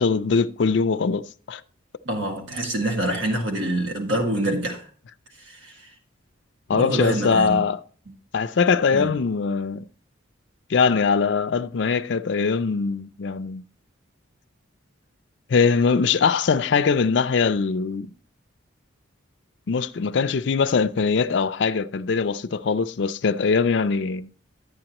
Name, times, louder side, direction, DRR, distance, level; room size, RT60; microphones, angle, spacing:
voice 1, 0.0-1.6 6.7-7.8 8.3-9.8 10.7-13.6 15.5-18.1 19.7-24.3, left 5 dB, 60° left, 0.4 m, -22 dB
voice 2, 2.0-4.8 5.4-5.9 6.7-7.6 8.1-8.2 8.9-9.2, right 1 dB, 70° right, 1.8 m, -26 dB
11.5 x 8.8 x 2.9 m
head